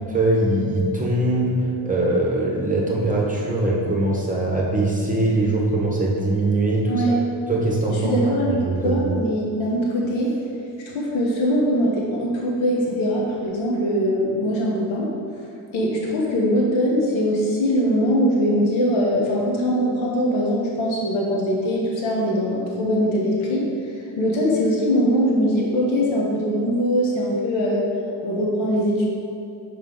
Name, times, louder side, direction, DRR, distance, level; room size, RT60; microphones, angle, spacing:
voice 1, 0.0-1.6 1.8-6.9 7.5-8.1 8.6-9.0, right 2 dB, 15° right, -3 dB, 1.0 m, -21 dB
voice 2, 6.8-7.2 8.0-10.3 10.8-15.1 15.7-23.7 24.2-27.8 28.2-29.0, equal, 80° left, -2 dB, 1.1 m, -22 dB
5.2 x 4.9 x 3.8 m, 2.7 s
cardioid pair, 75°, 47 cm